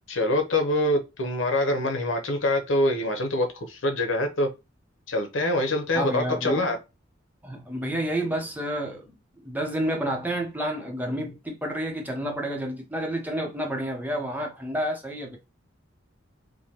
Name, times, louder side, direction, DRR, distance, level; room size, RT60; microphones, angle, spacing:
voice 1, 0.1-4.5 5.1-6.8, left 1 dB, 90° left, 0.9 m, -25 dB
voice 2, 5.9-6.6 7.4-15.4, right 1 dB, 10° right, 0.8 m, -30 dB
4.9 x 2.3 x 2.9 m
head